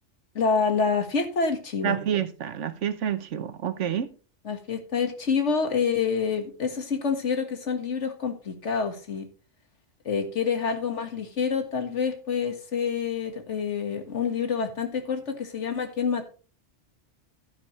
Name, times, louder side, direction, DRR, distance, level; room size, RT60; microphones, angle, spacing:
voice 1, 0.4-2.0 4.5-9.3 10.1-16.3, left 5 dB, 75° left, 1.9 m, -27 dB
voice 2, 1.8-4.1, right 9 dB, 80° right, 1.2 m, -28 dB
12.0 x 9.9 x 3.2 m
omnidirectional pair, 1.2 m